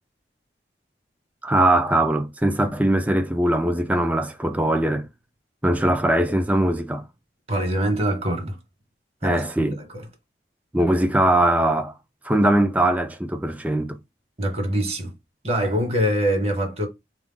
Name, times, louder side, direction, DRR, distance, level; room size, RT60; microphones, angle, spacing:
voice 1, 1.4-5.1 5.6-7.0 9.2-9.8 10.7-11.9 12.2-14.0, right 1 dB, 10° right, 0.4 m, -21 dB
voice 2, 7.5-8.6 9.2-10.1 14.4-15.1 15.4-16.9, equal, 35° right, 1.1 m, -24 dB
4.4 x 2.4 x 3.8 m
head